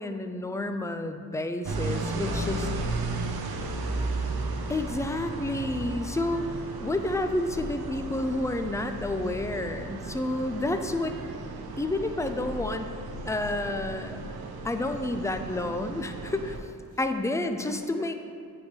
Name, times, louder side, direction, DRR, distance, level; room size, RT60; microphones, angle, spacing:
voice 1, 0.0-2.6 4.7-6.5 6.8-11.2 11.8-12.9 13.2-14.2 14.6-16.6 17.0-18.2, left 2 dB, 10° left, 6 dB, 0.4 m, -30 dB
sound 1, 1.6-16.6, right 2 dB, 85° right, 0.6 m, -35 dB
voice 2, 1.8-4.1 16.9-17.0 17.6-17.7, right 2 dB, 60° right, -4 dB, 0.9 m, -45 dB
9.3 x 3.6 x 3.3 m, 2.3 s
cardioid pair, 60°, 37 cm